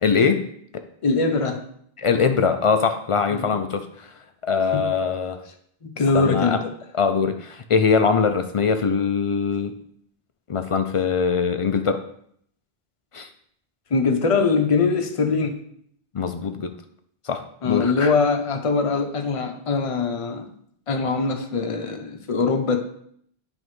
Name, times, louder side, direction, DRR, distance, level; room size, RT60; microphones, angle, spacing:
voice 1, 0.0-0.5 0.7-0.8 2.0-4.1 4.4-5.4 6.1-6.6 6.9-9.7 10.5-12.0 13.1-13.3 16.1-16.7 17.2-18.1, left 5 dB, 60° left, 8 dB, 0.3 m, -22 dB
voice 2, 1.0-1.6 3.3-3.5 4.7-4.9 5.8-6.7 13.9-15.6 17.6-20.5 20.9-22.8, left 4 dB, 35° left, 5 dB, 0.7 m, -22 dB
10.5 x 3.6 x 3.1 m, 0.66 s
omnidirectional pair, 1.1 m